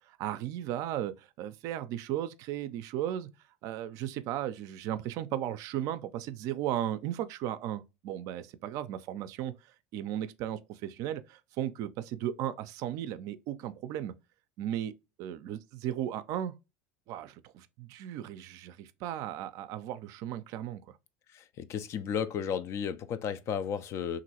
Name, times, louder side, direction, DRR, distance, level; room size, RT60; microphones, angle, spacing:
voice 1, 0.1-3.3 3.6-9.5 9.9-14.1 14.6-16.5 17.1-21.0, right 11 dB, 60° right, 0.4 m, -36 dB
voice 2, 21.3-24.2, left 7 dB, 45° left, 0.4 m, -33 dB
3.0 x 2.5 x 2.8 m
hypercardioid pair, 85°, 6 cm